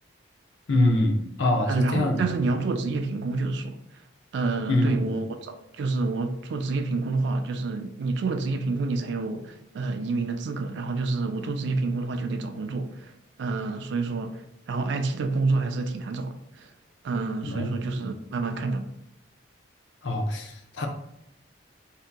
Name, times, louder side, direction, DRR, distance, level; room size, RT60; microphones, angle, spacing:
voice 1, 0.7-2.2 4.7-5.1 17.4-17.7 20.0-20.9, left 1 dB, 70° left, 0.5 m, -24 dB
voice 2, 1.7-3.8 4.3-13.1 13.4-16.7 17.0-18.9, right 3 dB, 60° right, 0.3 m, -28 dB
3.4 x 2.7 x 2.2 m
head